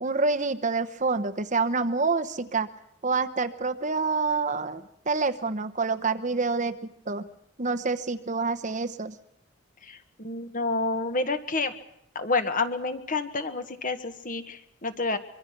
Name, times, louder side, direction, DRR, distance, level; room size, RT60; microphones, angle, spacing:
voice 1, 0.0-2.7 3.0-6.8 7.1-7.3 7.6-9.2, right 4 dB, 35° right, 10 dB, 1.0 m, -27 dB
voice 2, 9.8-11.7 12.1-15.2, left 3 dB, 40° left, 9 dB, 1.6 m, -29 dB
24.5 x 23.5 x 6.0 m, 0.75 s
head